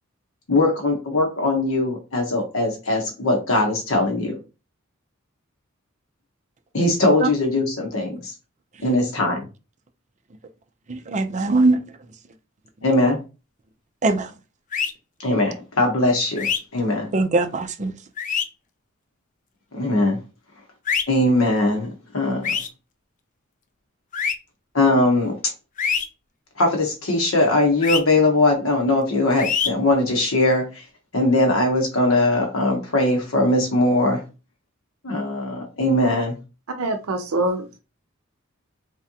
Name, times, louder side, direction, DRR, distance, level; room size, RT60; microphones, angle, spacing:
voice 1, 0.5-4.3 6.7-8.3 8.8-9.5 12.8-13.2 15.2-16.5 16.7-17.1 19.7-20.2 21.1-21.9 22.1-22.4 24.7-25.3 26.6-30.6 31.1-34.2 35.0-36.4, left 2 dB, 70° left, 1.1 m, -20 dB
voice 2, 10.9-11.8 14.0-14.3 17.1-17.9, right 2 dB, 35° right, 0.5 m, -21 dB
sound 1, 14.7-14.9 16.4-16.6 18.2-18.5 20.9-21.0 22.4-22.7 24.1-24.3 25.8-26.1 27.8-28.0 29.4-29.7, left 7 dB, 40° left, 0.5 m, -23 dB
voice 3, 36.8-37.8, right 2 dB, 85° right, 0.6 m, -24 dB
3.6 x 3.3 x 2.8 m
head